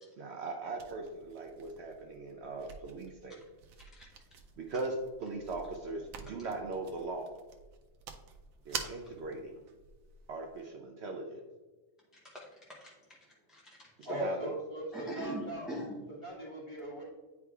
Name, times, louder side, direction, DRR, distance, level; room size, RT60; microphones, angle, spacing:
voice 1, 0.2-3.4 4.6-4.9 5.2-7.3 8.7-9.6 10.3-11.4 14.1-14.5, right 3 dB, 60° right, 3 dB, 0.8 m, -39 dB
sound 1, 0.7-10.7, right 6 dB, 85° right, 1.1 m, -48 dB
voice 2, 12.1-14.1 14.9-16.0, right 1 dB, ahead, -5 dB, 0.6 m, -43 dB
voice 3, 14.1-15.7 16.2-17.0, equal, 35° left, -5 dB, 1.8 m, -38 dB
9.6 x 4.7 x 2.4 m, 1.3 s
omnidirectional pair, 1.4 m